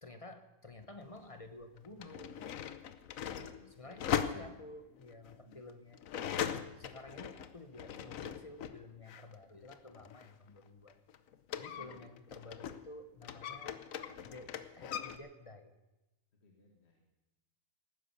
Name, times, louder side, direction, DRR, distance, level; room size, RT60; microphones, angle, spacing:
voice 1, 0.0-2.5 3.3-6.0 6.4-11.0 11.6-13.8 14.2-15.7, left 2 dB, 30° left, 8 dB, 0.9 m, -52 dB
sound 1, 0.8-0.9 1.8-8.8 9.1-12.9 13.2-15.2, left 9 dB, 75° left, 1.2 m, -40 dB
voice 2, 3.3-4.5 5.4-5.6 11.6-12.0 16.4-17.0, left 3 dB, 50° left, 0 dB, 2.1 m, -63 dB
18.0 x 9.9 x 6.7 m, 1.0 s
omnidirectional pair, 1.4 m